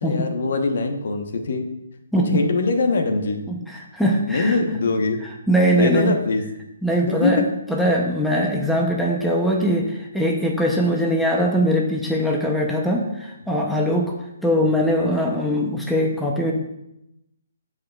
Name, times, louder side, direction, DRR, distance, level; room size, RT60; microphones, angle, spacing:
voice 1, 0.0-1.7 2.3-3.4 4.3-5.2 5.7-6.5 7.0-7.5 13.5-13.6 14.5-14.7 16.2-16.3, left 3 dB, 60° left, 5 dB, 1.0 m, -22 dB
voice 2, 3.5-4.6 5.5-6.1 6.8-14.1 14.4-16.5, equal, ahead, -1 dB, 0.7 m, -21 dB
14.0 x 4.9 x 2.4 m, 0.86 s
hypercardioid pair, 160°, 0 cm